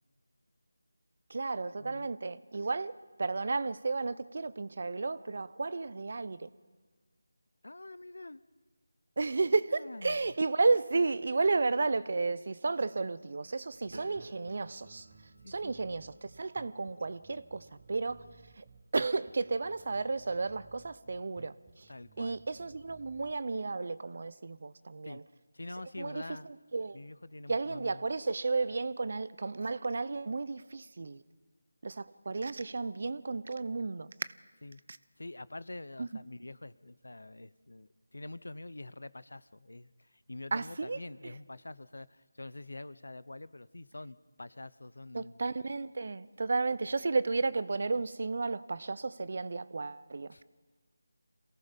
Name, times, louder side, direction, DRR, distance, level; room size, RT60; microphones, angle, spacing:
voice 1, 1.3-6.5 9.2-15.1 15.5-18.2 18.6-18.7 18.9-21.9 22.2-25.2 26.0-27.0 27.5-31.2 31.8-34.3 34.9-35.0 36.0-36.2 40.5-41.0 41.2-41.3 45.1-50.4, right 3 dB, 50° right, 0.8 m, -33 dB
voice 2, 1.8-2.1 7.6-8.4 9.7-10.2 15.4-15.8 21.9-22.4 25.0-25.2 25.5-26.5 26.9-28.0 34.6-34.8 35.2-45.4 50.3-50.4, left 2 dB, 75° left, 0.8 m, -46 dB
Bass guitar, 13.7-23.3, right 6 dB, 15° right, 1.3 m, -59 dB
sound 1, 13.9-19.8 20.3-20.7, right 2 dB, 65° right, 2.0 m, -57 dB
27.0 x 18.0 x 5.3 m
figure-of-eight pair, 165°, 0 cm